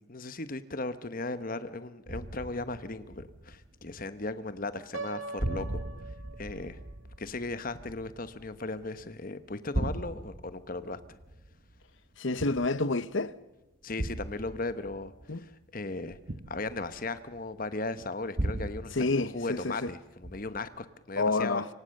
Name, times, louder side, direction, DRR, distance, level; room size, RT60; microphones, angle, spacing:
voice 1, 0.0-6.8 7.2-11.2 13.8-16.2 16.5-21.6, left 2 dB, 40° left, 1.1 m, -37 dB
sound 1, 2.1-4.3 4.6-5.1 5.4-9.1 9.5-13.1 14.0-17.5 18.4-19.9 20.2-20.7, right 1 dB, 40° right, 1.0 m, -38 dB
Piano, 4.9-6.9, right 4 dB, 80° right, 1.4 m, -41 dB
voice 2, 12.2-13.3 15.3-15.4 18.9-19.9 21.2-21.7, left 3 dB, 60° left, 0.9 m, -28 dB
26.5 x 25.0 x 6.6 m
head